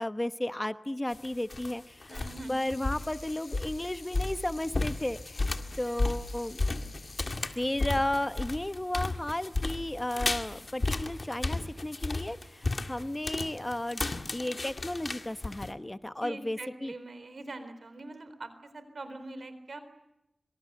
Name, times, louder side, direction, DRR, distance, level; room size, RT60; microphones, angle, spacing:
voice 1, 0.0-2.1 2.5-5.5 5.8-6.6 7.5-14.0 14.3-16.9, left 1 dB, 20° left, 12 dB, 1.0 m, -33 dB
sound 1, 1.1-1.7 2.0-2.4 2.7-15.7, left 2 dB, 55° left, 2.0 m, -33 dB
Sink (filling or washing), 2.1-7.5, left 3 dB, 75° left, 7.9 m, -51 dB
voice 2, 2.1-2.7 5.9-6.1 16.2-19.8, right 2 dB, 75° right, 11 dB, 3.9 m, -43 dB
26.5 x 25.0 x 8.0 m, 0.88 s
wide cardioid pair, 65°, 0 cm